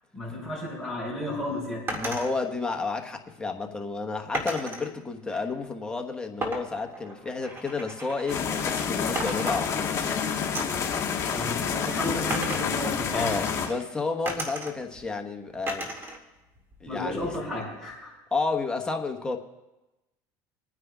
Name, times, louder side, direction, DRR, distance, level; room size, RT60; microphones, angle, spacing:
voice 1, 0.1-2.0 11.3-13.3 16.9-18.1, left 1 dB, 10° right, -8 dB, 5.3 m, -33 dB
voice 2, 1.9-10.3 13.1-15.9 16.8-17.4 18.3-19.4, left 4 dB, 10° left, 3 dB, 1.2 m, -31 dB
sound 1, 1.9-2.3 4.3-4.9 6.4-8.9 9.1-10.1 10.5-10.9 12.3-13.8 14.2-15.0 15.7-16.2 16.5-17.3, right 1 dB, 25° right, 2.1 m, -35 dB
sound 2, 8.3-13.7, left 7 dB, 35° left, 2.2 m, -28 dB
28.0 x 9.5 x 2.4 m, 1.0 s
supercardioid pair, 105°, 9 cm